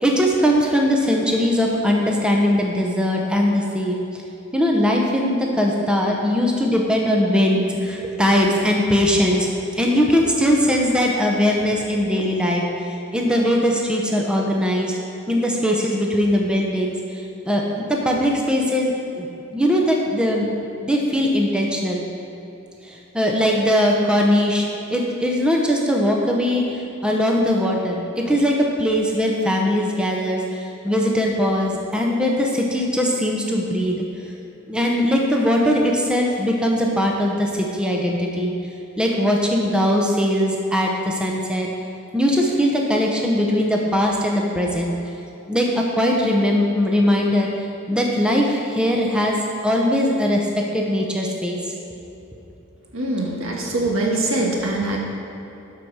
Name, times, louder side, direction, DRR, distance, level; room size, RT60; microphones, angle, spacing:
voice 1, 0.0-4.0 4.5-15.0 15.3-17.0 17.5-19.3 19.5-20.5 20.8-22.1 22.8-34.0 34.7-38.5 39.0-41.7 42.1-45.0 45.5-47.6 47.9-49.4 49.6-51.6, equal, 5° right, -1 dB, 0.7 m, -20 dB
voice 2, 52.9-55.0, right 2 dB, 75° right, -1 dB, 1.6 m, -23 dB
12.0 x 4.7 x 6.0 m, 2.9 s
head